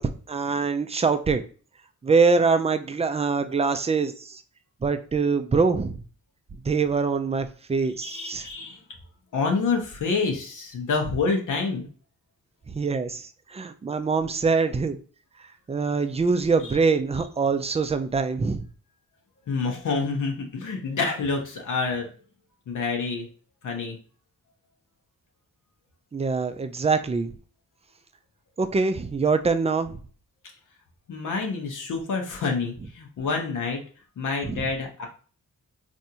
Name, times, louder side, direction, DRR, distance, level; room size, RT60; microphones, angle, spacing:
voice 1, 0.0-1.4 2.0-4.4 4.8-6.0 6.6-8.5 12.7-15.0 15.7-18.6 26.1-27.3 28.6-30.0 34.4-34.7, right 4 dB, 20° right, 9 dB, 0.4 m, -24 dB
voice 2, 8.0-8.8 9.3-11.9 16.6-16.7 19.5-22.1 22.7-23.3 23.6-24.0 31.1-33.8 34.2-35.1, left 4 dB, 70° left, 1 dB, 0.8 m, -27 dB
3.4 x 2.6 x 2.8 m, 0.39 s
cardioid pair, 55°, 32 cm